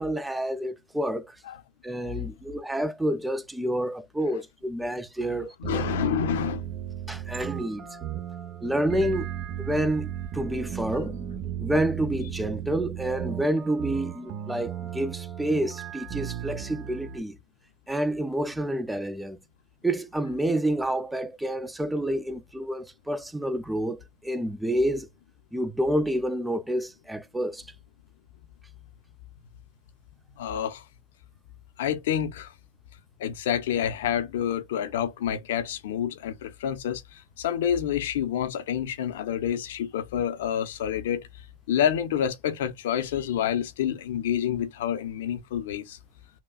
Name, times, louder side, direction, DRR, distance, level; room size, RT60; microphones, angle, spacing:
voice 1, 0.0-1.4 1.8-5.8 7.1-7.9 8.6-9.3 9.6-11.2 11.6-17.4 17.9-19.4 19.8-25.1 25.5-27.7, right 1 dB, 5° right, 0.4 m, -28 dB
voice 2, 5.3-6.6 30.4-30.8 31.8-32.5 33.2-41.2 41.7-46.0, left 9 dB, 80° left, 0.8 m, -28 dB
sound 1, 5.6-17.2, right 10 dB, 40° right, 0.9 m, -35 dB
5.8 x 2.3 x 2.3 m
supercardioid pair, 130°, 0 cm